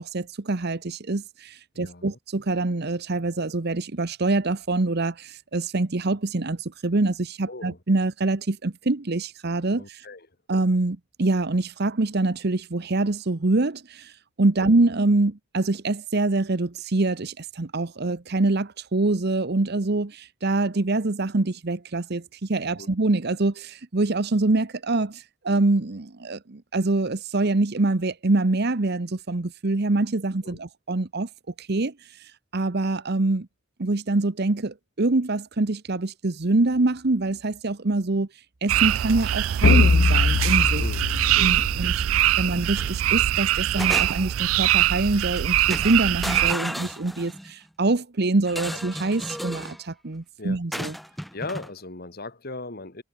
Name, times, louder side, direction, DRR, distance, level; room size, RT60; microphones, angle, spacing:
voice 1, 0.0-10.0 10.5-14.1 14.4-31.3 31.6-31.9 32.5-33.5 33.8-38.3 38.6-40.8 41.4-41.9 42.4-50.9, right 2 dB, 50° right, 0.9 m, -25 dB
voice 2, 1.7-2.2 7.5-7.8 9.8-10.3 14.6-14.7 22.7-22.9 30.4-30.6 40.8-41.7 48.7-48.8 50.4-50.6 51.3-53.0, left 2 dB, 45° left, 2.2 m, -38 dB
sound 1, 38.7-46.5, right 13 dB, 75° right, 0.4 m, -22 dB
sound 2, 39.6-42.2, left 4 dB, 65° left, 0.6 m, -21 dB
sound 3, 42.5-42.9 43.3-44.4 45.2-45.4 45.7-47.5 48.5-49.8 50.7-51.7, equal, ahead, 1.4 m, -34 dB
head